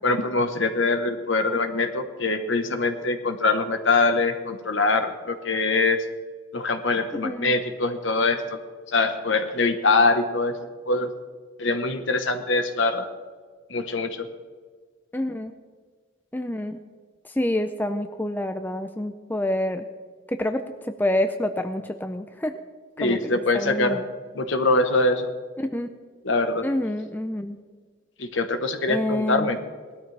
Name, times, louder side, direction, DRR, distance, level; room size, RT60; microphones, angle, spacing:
voice 1, 0.0-6.0 6.5-8.6 8.9-10.5 10.9-11.1 11.6-13.1 13.7-14.3 23.0-24.0 24.3-25.3 26.2-26.7 28.2-29.6, left 3 dB, 65° left, 7 dB, 1.2 m, -23 dB
voice 2, 7.2-7.5 15.1-15.5 16.3-16.8 17.4-19.8 20.3-22.5 23.0-24.0 25.7-25.9 26.6-27.6 28.9-29.5, left 1 dB, 10° left, 7 dB, 0.5 m, -27 dB
19.0 x 13.0 x 3.4 m, 1.5 s
head